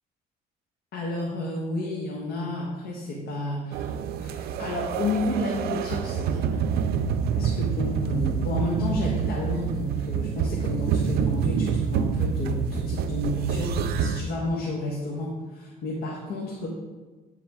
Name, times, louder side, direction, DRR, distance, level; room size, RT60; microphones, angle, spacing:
voice 1, 0.9-6.6 7.3-16.7, left 1 dB, 65° left, -3 dB, 1.2 m, -31 dB
sound 1, 3.7-14.2, right 7 dB, 70° right, 0.4 m, -27 dB
9.5 x 3.8 x 3.6 m, 1.3 s
cardioid pair, 110°, 17 cm